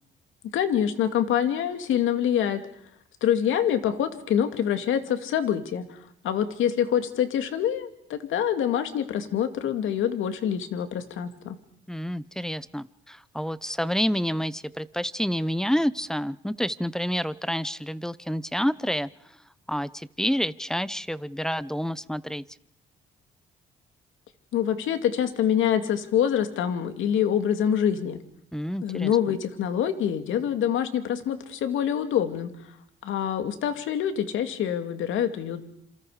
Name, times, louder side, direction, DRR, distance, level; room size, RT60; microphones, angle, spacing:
voice 1, 0.5-2.6 3.2-6.0 6.2-11.6 24.5-28.2 28.8-32.5 33.0-35.6, left 9 dB, 80° left, 8 dB, 2.3 m, -25 dB
voice 2, 11.9-19.1 19.7-22.4 28.5-29.4, equal, 5° left, 17 dB, 0.8 m, -28 dB
28.0 x 27.0 x 5.0 m, 0.70 s
cardioid pair, 90°, 20 cm